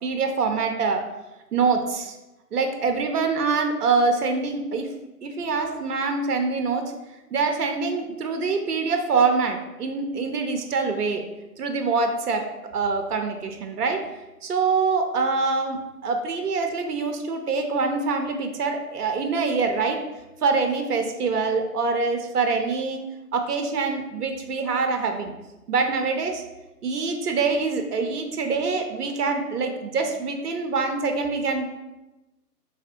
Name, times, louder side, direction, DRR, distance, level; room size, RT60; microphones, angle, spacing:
voice 1, 0.0-1.0 1.5-2.1 2.5-4.9 5.2-6.8 7.3-11.2 11.6-12.4 12.7-14.0 14.4-20.0 20.4-23.0 23.3-25.3 25.7-26.4 26.8-31.7, right 4 dB, 70° right, 5 dB, 0.7 m, -25 dB
3.5 x 3.2 x 2.8 m, 1.0 s
figure-of-eight pair, 145°, 48 cm